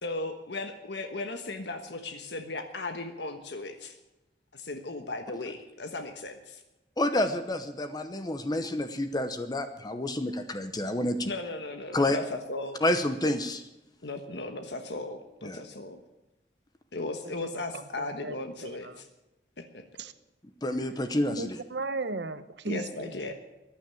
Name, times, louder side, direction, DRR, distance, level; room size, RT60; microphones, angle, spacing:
voice 1, 0.0-4.0 4.5-6.6 11.2-12.8 14.0-16.0 16.9-19.1 19.6-19.8 22.7-23.3, left 2 dB, 75° left, 6 dB, 1.3 m, -36 dB
voice 2, 7.0-11.3 11.9-12.2 12.8-13.6 15.4-15.6 20.6-21.6, left 1 dB, 25° left, 9 dB, 0.8 m, -29 dB
voice 3, 17.7-18.4 18.6-19.0 20.0-20.1 21.3-23.3, right 3 dB, 80° right, 12 dB, 0.9 m, -36 dB
15.0 x 10.5 x 7.7 m, 0.99 s
head